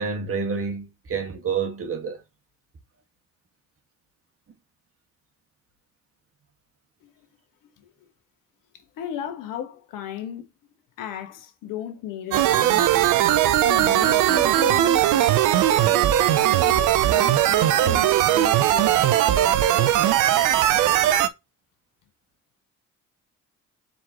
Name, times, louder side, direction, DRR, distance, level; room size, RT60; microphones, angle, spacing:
voice 1, 0.0-2.2, right 5 dB, 45° right, 1.7 m, -28 dB
voice 2, 8.7-10.5 11.0-13.1 13.6-16.1 16.6-20.3, left 10 dB, 80° left, 1.2 m, -36 dB
sound 1, 12.3-21.3, right 12 dB, 75° right, 0.6 m, -19 dB
4.5 x 3.9 x 2.9 m
supercardioid pair, 60°, 32 cm